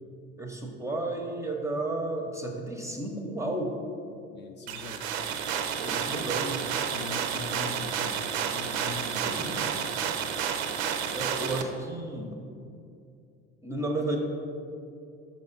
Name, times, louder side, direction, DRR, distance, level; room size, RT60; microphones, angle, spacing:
voice 1, 0.4-3.7 5.8-6.6 9.2-9.6 11.1-12.4 13.6-14.2, right 2 dB, 10° right, 1 dB, 0.7 m, -32 dB
voice 2, 4.3-5.1 5.9-6.3 6.9-10.1, left 4 dB, 30° left, 5 dB, 0.5 m, -42 dB
sound 1, 4.7-11.6, right 7 dB, 70° right, 0.5 m, -31 dB
5.5 x 5.2 x 3.9 m, 2.5 s
figure-of-eight pair, 60°, 34 cm